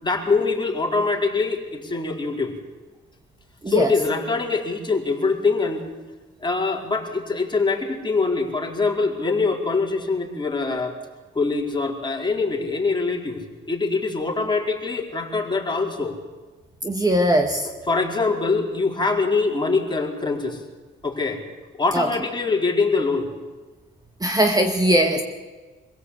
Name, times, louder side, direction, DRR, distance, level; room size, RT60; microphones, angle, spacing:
voice 1, 0.0-2.5 3.7-5.8 6.4-11.0 11.3-16.2 17.9-20.6 21.0-21.4 21.8-23.3, left 4 dB, 20° left, 0 dB, 4.4 m, -23 dB
voice 2, 3.6-3.9 16.8-17.7 21.9-22.1 24.2-25.2, right 1 dB, 20° right, 4 dB, 2.1 m, -20 dB
25.5 x 16.5 x 8.4 m, 1.3 s
cardioid pair, 90°, 20 cm